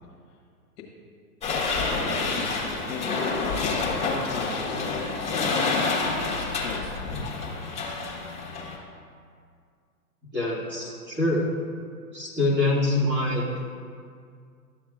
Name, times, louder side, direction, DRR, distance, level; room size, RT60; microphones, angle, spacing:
sound 1, 1.4-8.8, left 3 dB, 15° left, 1.5 m, -28 dB
voice 1, 2.3-7.4, left 4 dB, 40° left, -2 dB, 1.4 m, -36 dB
voice 2, 10.3-11.5 12.1-13.6, left 2 dB, 20° right, -6 dB, 2.1 m, -25 dB
12.5 x 7.2 x 2.4 m, 2.2 s
hypercardioid pair, 120°, 47 cm